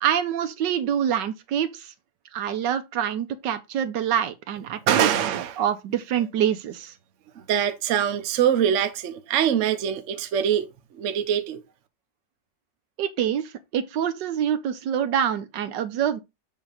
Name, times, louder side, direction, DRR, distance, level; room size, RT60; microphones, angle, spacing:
voice 1, 0.0-1.9 2.3-6.9 13.0-16.2, right 9 dB, 75° right, 1.4 m, -26 dB
voice 2, 4.9-5.6 7.3-10.7 10.9-11.6, right 9 dB, 55° right, 0.9 m, -23 dB
7.2 x 2.9 x 5.0 m
omnidirectional pair, 2.0 m